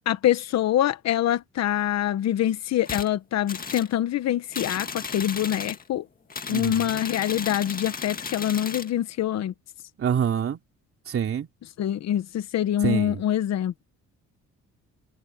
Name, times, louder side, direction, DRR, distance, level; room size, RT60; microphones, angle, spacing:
voice 1, 0.1-6.0 6.5-9.5 11.8-13.8, left 11 dB, 60° left, 1.1 m, -25 dB
sound 1, 2.8-3.1 3.5-3.9 4.5-5.8 6.3-8.9, left 5 dB, 30° left, 1.9 m, -35 dB
voice 2, 6.5-6.9 10.0-10.6 11.1-11.5 12.8-13.2, right 8 dB, 45° right, 3.2 m, -26 dB
cardioid pair, 120°, 30 cm